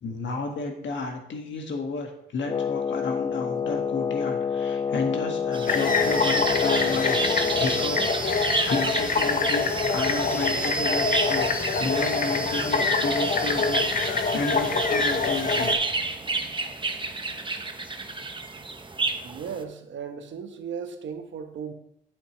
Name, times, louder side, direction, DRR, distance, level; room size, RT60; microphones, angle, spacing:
voice 1, 0.0-7.2 7.6-11.5 11.7-15.8, left 3 dB, 65° left, 3 dB, 1.7 m, -32 dB
Wind instrument woodwind instrument, 2.5-8.2, left 7 dB, 20° left, 0.4 m, -28 dB
sound 1, 5.5-19.6, right 3 dB, 25° right, 1.0 m, -30 dB
sound 2, 5.7-15.7, left 4 dB, 40° left, 1.0 m, -25 dB
voice 2, 19.2-21.7, right 6 dB, 65° right, 7 dB, 1.1 m, -36 dB
8.3 x 8.2 x 3.1 m, 0.74 s
supercardioid pair, 55°, 21 cm